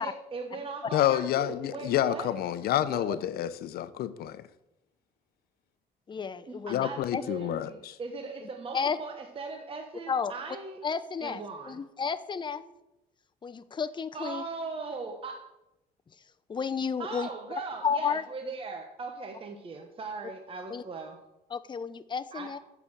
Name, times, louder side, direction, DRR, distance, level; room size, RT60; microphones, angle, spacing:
voice 1, 0.0-2.4 2.7-3.2 6.5-10.8 11.2-11.8 14.1-15.4 17.0-21.2 22.3-22.5, right 4 dB, 35° right, 4 dB, 1.2 m, -39 dB
voice 2, 0.9-4.5 6.7-7.9, left 12 dB, 65° left, 14 dB, 0.7 m, -28 dB
voice 3, 6.1-6.9 7.1-7.2 8.7-9.0 10.1-10.3 10.8-12.6 13.4-14.4 16.5-17.3 17.8-18.2 20.7-20.8 21.5-22.6, left 6 dB, 25° left, 11 dB, 0.7 m, -32 dB
8.6 x 6.9 x 7.2 m, 0.92 s
cardioid pair, 110°, 17 cm